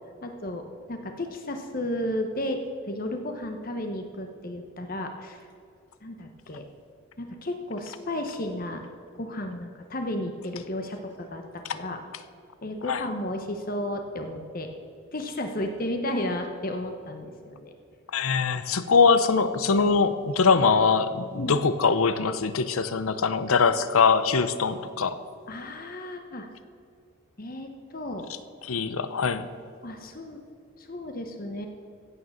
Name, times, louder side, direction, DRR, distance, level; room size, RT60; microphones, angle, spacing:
voice 1, 0.2-2.6 2.9-5.4 6.0-6.7 7.2-8.8 9.1-12.0 12.6-14.7 15.1-17.7 21.3-21.6 25.5-26.5 27.4-28.3 29.8-30.4 30.8-31.7, left 1 dB, 40° left, 5 dB, 0.9 m, -33 dB
voice 2, 18.1-25.2 28.6-29.5, left 5 dB, 85° left, 13 dB, 0.7 m, -22 dB
16.0 x 6.5 x 7.1 m, 2.4 s
head